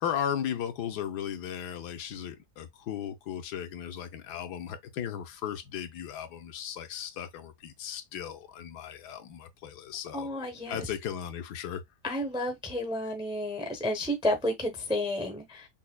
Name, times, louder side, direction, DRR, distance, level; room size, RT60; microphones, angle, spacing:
voice 1, 0.0-10.3 10.7-11.8, left 9 dB, 80° left, 1.2 m, -36 dB
voice 2, 10.1-10.9 12.0-15.7, left 1 dB, 5° right, 0.4 m, -31 dB
5.5 x 2.2 x 2.2 m
omnidirectional pair, 1.7 m